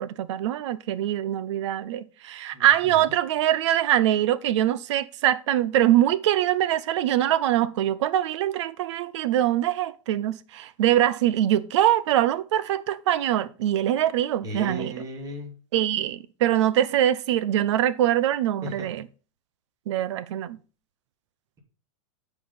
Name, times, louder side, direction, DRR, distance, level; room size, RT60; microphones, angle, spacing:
voice 1, 0.0-14.9 15.7-19.1 19.9-20.6, right 12 dB, 60° right, 0.8 m, -23 dB
voice 2, 2.5-3.0 14.4-15.5 18.6-18.9, equal, 20° right, 2.6 m, -36 dB
9.4 x 5.0 x 5.6 m
supercardioid pair, 150°, 17 cm